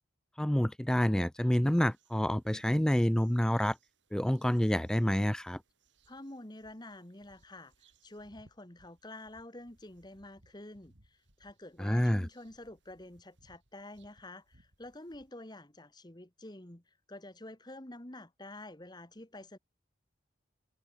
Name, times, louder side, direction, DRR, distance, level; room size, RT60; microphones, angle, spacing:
voice 1, 0.4-3.8 4.1-5.6 11.8-12.3, equal, 5° left, 0.3 m, -28 dB
sound 1, 1.6-15.3, right 2 dB, 70° right, 5.1 m, -68 dB
voice 2, 6.1-7.7 8.0-19.6, left 1 dB, 20° left, 1.8 m, -48 dB
head